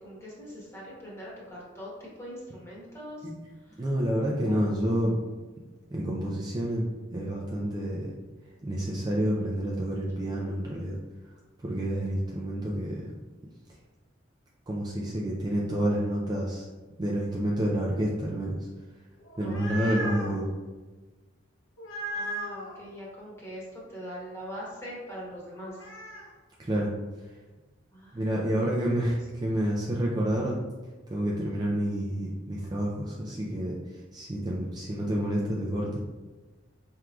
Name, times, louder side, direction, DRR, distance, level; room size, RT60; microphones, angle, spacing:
voice 1, 0.0-3.3 3.7-3.8 4.4-4.7 19.4-20.0 22.1-25.8 27.9-28.7, equal, 15° left, -6 dB, 1.2 m, -42 dB
voice 2, 3.8-5.2 5.9-6.9 7.1-8.1 8.6-11.0 11.6-13.1 14.7-16.7 17.0-18.6 19.4-20.5 26.6-26.9 28.1-30.6 31.1-33.7 34.1-36.0, right 1 dB, 20° right, -4 dB, 0.4 m, -29 dB
sound 1, 19.2-20.4 21.8-22.7 25.5-26.3, right 1 dB, 90° left, 0.8 m, -36 dB
4.5 x 3.6 x 2.3 m, 1.2 s
head